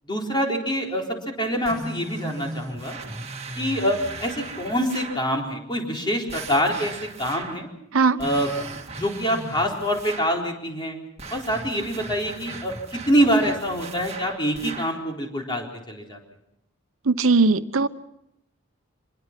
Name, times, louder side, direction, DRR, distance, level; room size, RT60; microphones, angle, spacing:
voice 1, 0.1-3.0 3.6-7.7 8.2-8.5 8.7-11.0 11.3-16.2, equal, 25° left, 1 dB, 4.2 m, -25 dB
sound 1, 1.6-5.3 6.3-7.7 8.2-10.5 11.2-15.1, right 3 dB, 30° right, 2.0 m, -37 dB
voice 2, 17.1-17.9, right 4 dB, 85° right, 13 dB, 0.9 m, -19 dB
25.5 x 21.5 x 6.0 m, 0.80 s
head